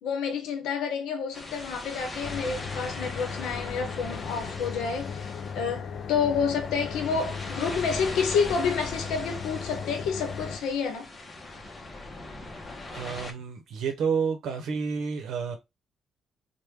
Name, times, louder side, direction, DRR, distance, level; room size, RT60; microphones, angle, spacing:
voice 1, 0.0-11.1, left 6 dB, 85° left, 0.8 m, -29 dB
sound 1, 1.3-13.3, left 2 dB, 30° left, 0.7 m, -40 dB
sound 2, 2.2-10.6, left 6 dB, 60° left, 0.4 m, -37 dB
voice 2, 12.5-15.6, right 6 dB, 80° right, 0.7 m, -30 dB
3.1 x 2.1 x 3.3 m
cardioid pair, 90°, 0 cm